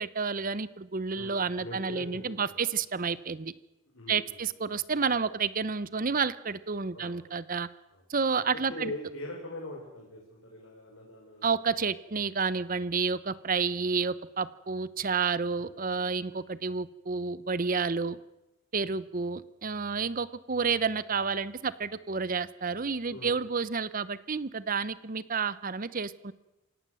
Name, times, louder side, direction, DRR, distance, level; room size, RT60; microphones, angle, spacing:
voice 1, 0.0-3.5 4.1-7.7 8.1-8.9 11.4-18.2 18.7-26.3, right 5 dB, 40° right, 17 dB, 0.7 m, -30 dB
voice 2, 1.1-2.6 3.9-4.4 6.9-7.2 7.9-8.0 8.7-11.6 15.6-16.1 18.8-18.9 23.1-23.4, left 1 dB, 70° left, -1 dB, 4.8 m, -42 dB
27.5 x 17.0 x 7.7 m, 0.97 s
head